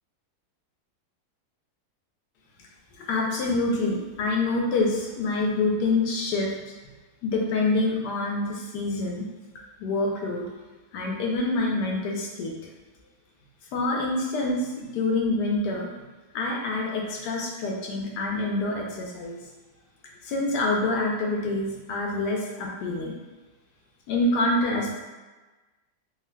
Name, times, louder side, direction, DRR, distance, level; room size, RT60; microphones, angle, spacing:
voice 1, 2.9-6.5 7.2-9.2 9.8-10.5 10.9-12.5 13.7-15.9 16.3-19.4 20.2-23.1 24.1-25.0, left 2 dB, 85° left, -1 dB, 1.2 m, -26 dB
3.4 x 2.4 x 2.2 m, 1.2 s
omnidirectional pair, 1.7 m